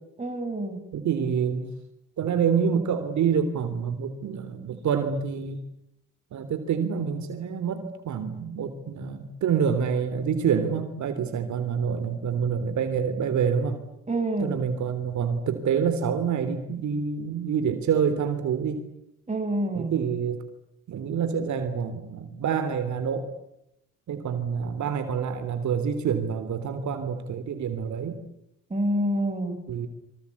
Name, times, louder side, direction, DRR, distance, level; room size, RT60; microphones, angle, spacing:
voice 1, 0.2-0.8 14.1-14.6 19.3-19.9 28.7-29.6, right 1 dB, 20° right, 6 dB, 5.8 m, -27 dB
voice 2, 0.9-1.7 2.2-5.6 6.3-13.8 14.4-18.8 19.7-20.4 20.9-23.3 24.1-28.2 29.7-29.9, right 7 dB, 70° right, 9 dB, 3.4 m, -27 dB
26.5 x 25.0 x 8.5 m, 0.82 s
cardioid pair, 90°, 30 cm